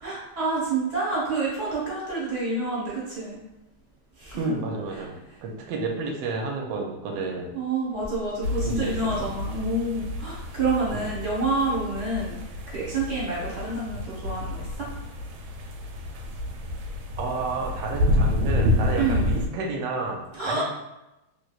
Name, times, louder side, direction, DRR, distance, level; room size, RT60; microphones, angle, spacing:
voice 1, 0.0-3.4 4.2-4.5 4.9-5.0 7.5-12.4 12.7-14.9 19.0-19.3 20.3-20.6, right 2 dB, 40° right, -7 dB, 1.1 m, -28 dB
voice 2, 4.4-7.5 8.6-9.3 10.9-11.0 17.2-20.6, right 3 dB, 70° right, 1 dB, 1.2 m, -31 dB
sound 1, 8.4-19.5, left 1 dB, 90° right, 1.5 m, -29 dB
3.2 x 3.1 x 2.4 m, 0.94 s
omnidirectional pair, 2.4 m